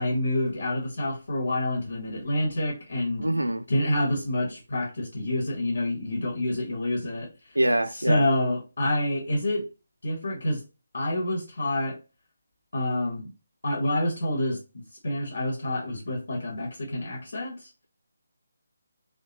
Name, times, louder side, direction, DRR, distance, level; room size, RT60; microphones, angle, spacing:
voice 1, 0.0-3.3 3.7-7.6 7.9-9.7 10.0-10.6 10.9-12.0 12.7-13.3 13.6-17.7, left 1 dB, 60° left, 1.2 m, -28 dB
voice 2, 3.2-3.6 7.6-8.2, right 1 dB, 85° right, 0.4 m, -24 dB
3.3 x 2.4 x 2.8 m
figure-of-eight pair, 150°, 0 cm